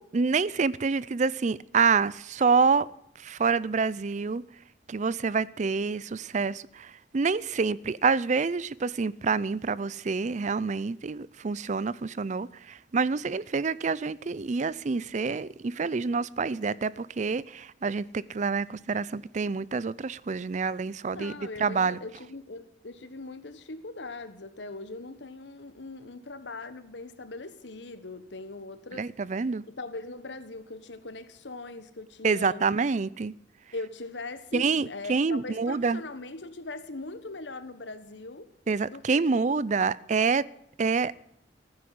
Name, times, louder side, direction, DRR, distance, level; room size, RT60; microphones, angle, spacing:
voice 1, 0.0-2.9 3.2-4.4 4.9-21.3 21.6-22.0 28.9-29.6 32.2-33.3 34.5-36.0 38.7-40.5 40.8-41.2, right 4 dB, 40° right, 0.4 m, -27 dB
voice 2, 21.1-29.1 29.7-32.6 33.7-38.5 38.8-39.4, left 2 dB, 80° left, 1.4 m, -40 dB
15.0 x 9.7 x 7.8 m
head